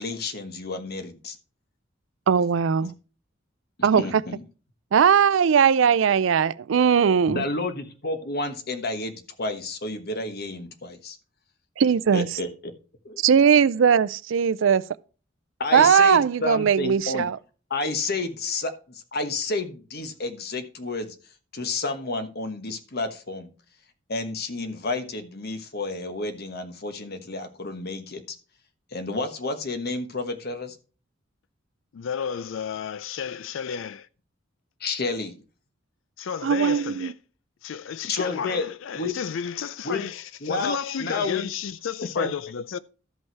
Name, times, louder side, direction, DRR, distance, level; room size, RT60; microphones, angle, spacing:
voice 1, 0.0-1.4 3.8-4.4 7.3-11.2 12.1-12.7 13.0-13.2 15.6-17.3 17.7-21.1 21.5-23.5 24.1-28.2 28.9-30.8 34.8-35.4 38.1-38.6 38.9-39.1 39.8-40.0 40.4-41.4 42.2-42.3, left 3 dB, 50° left, 1.2 m, -30 dB
voice 2, 2.3-2.9 3.8-4.0 4.9-7.4 11.8-12.3 13.2-14.8 15.7-17.4 36.4-37.1, right 7 dB, 70° right, 0.4 m, -19 dB
voice 3, 31.9-34.1 36.2-37.1 37.6-42.8, left 7 dB, 70° left, 0.4 m, -32 dB
13.0 x 5.5 x 4.6 m
head